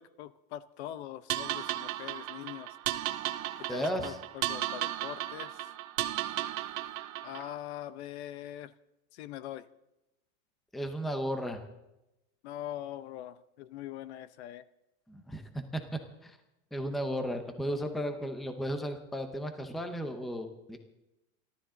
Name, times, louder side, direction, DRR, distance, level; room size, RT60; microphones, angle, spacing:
voice 1, 0.0-2.7 3.7-5.6 7.2-8.7 9.1-9.7 12.4-14.6, left 12 dB, 50° left, 16 dB, 0.7 m, -42 dB
sound 1, 1.3-7.5, right 14 dB, 75° right, 1.0 m, -35 dB
voice 2, 3.7-4.1 10.7-11.6 15.1-15.8 16.2-16.4 16.7-20.8, equal, ahead, 7 dB, 0.6 m, -34 dB
28.5 x 13.0 x 3.8 m, 0.92 s
supercardioid pair, 175°, 41 cm